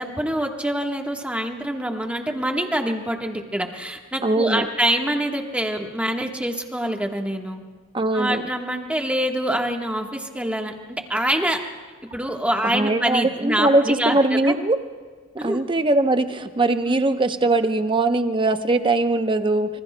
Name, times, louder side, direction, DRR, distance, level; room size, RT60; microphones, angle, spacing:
voice 1, 0.0-7.6 8.1-11.6 12.1-14.2 14.4-14.5 15.4-15.6 16.9-17.0, right 1 dB, 5° right, 3 dB, 1.3 m, -25 dB
voice 2, 4.2-4.7 7.9-8.4 12.7-14.8 15.4-19.8, right 2 dB, 25° right, 8 dB, 0.8 m, -21 dB
26.0 x 24.5 x 2.2 m, 1.5 s
head